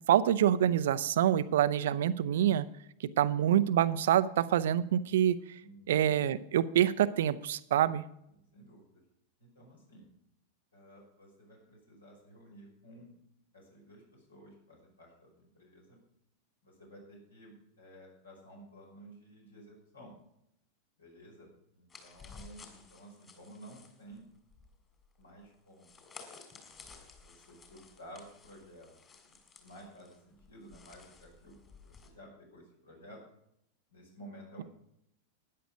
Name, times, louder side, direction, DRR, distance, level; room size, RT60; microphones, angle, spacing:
voice 1, 0.1-2.6 3.2-5.4 5.9-8.0, right 11 dB, 60° right, 15 dB, 0.6 m, -26 dB
voice 2, 5.6-6.0 8.3-9.0 9.4-10.1 10.7-13.1 13.5-16.0 16.6-20.1 21.0-24.2 25.2-26.0 26.6-28.9 29.3-33.2 33.9-34.6, right 1 dB, 75° left, -1 dB, 5.5 m, -54 dB
sound 1, 21.9-32.1, left 4 dB, 25° left, 3.0 m, -54 dB
13.0 x 10.0 x 5.0 m, 0.75 s
figure-of-eight pair, 90°, 0 cm